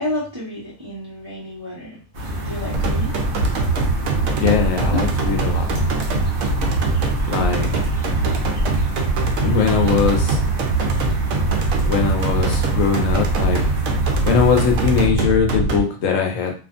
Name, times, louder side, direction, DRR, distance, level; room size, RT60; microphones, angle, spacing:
voice 1, 0.0-2.0 2.4-3.2 4.2-4.3 4.9-5.0, left 1 dB, 25° right, -7 dB, 1.0 m, -30 dB
sound 1, 2.1-15.1, equal, 50° right, 0.8 m, -28 dB
sound 2, 2.7-15.8, right 3 dB, 80° right, 1.0 m, -21 dB
voice 2, 4.4-5.7 7.3-7.7 9.4-10.4 11.8-13.6 14.2-16.5, left 6 dB, 75° left, 2 dB, 1.0 m, -20 dB
2.6 x 2.5 x 2.4 m, 0.37 s
omnidirectional pair, 1.4 m